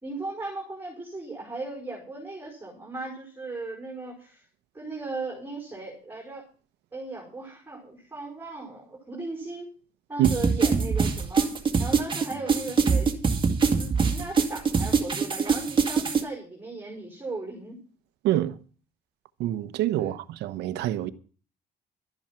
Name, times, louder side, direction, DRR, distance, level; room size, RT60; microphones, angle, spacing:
voice 1, 0.0-4.4 4.7-6.4 6.9-9.7 10.1-13.1 13.8-17.8 20.0-20.1, right 3 dB, 10° right, 5.3 m, -37 dB
sound 1, 10.2-16.2, right 5 dB, 30° right, 2.1 m, -23 dB
voice 2, 18.2-18.6 19.4-21.1, right 14 dB, 85° right, 1.0 m, -26 dB
12.5 x 10.5 x 5.9 m
cardioid pair, 110°, 17 cm